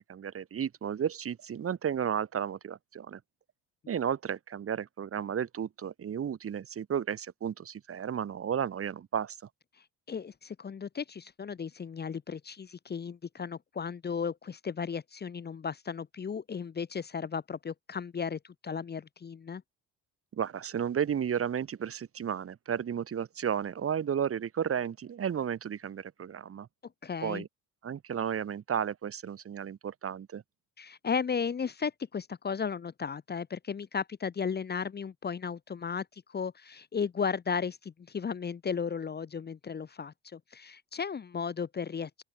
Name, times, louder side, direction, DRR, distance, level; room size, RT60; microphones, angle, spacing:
voice 1, 0.0-3.2 3.9-9.4 20.3-26.7 27.2-27.5 27.8-30.4, right 8 dB, 40° right, 1.7 m, -33 dB
voice 2, 10.1-19.6 27.0-27.4 30.8-42.2, left 6 dB, 30° left, 1.0 m, -35 dB
open air
hypercardioid pair, 65°, 34 cm